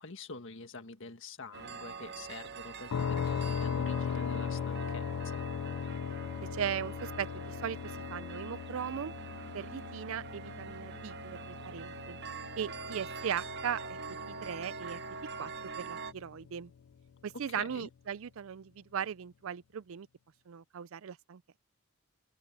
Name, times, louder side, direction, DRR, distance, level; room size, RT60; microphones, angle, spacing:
voice 1, 0.0-5.5 17.6-17.9, left 3 dB, 60° left, 1.7 m, -46 dB
sound 1, 1.5-16.1, right 5 dB, 50° right, 1.0 m, -44 dB
sound 2, 2.9-16.6, left 7 dB, 90° left, 0.4 m, -38 dB
voice 2, 6.5-7.8 8.1-9.1 9.5-12.2 12.6-14.0 14.4-15.5 15.8-16.7 17.2-20.1 20.5-21.4, right 8 dB, 65° right, 0.4 m, -38 dB
open air
head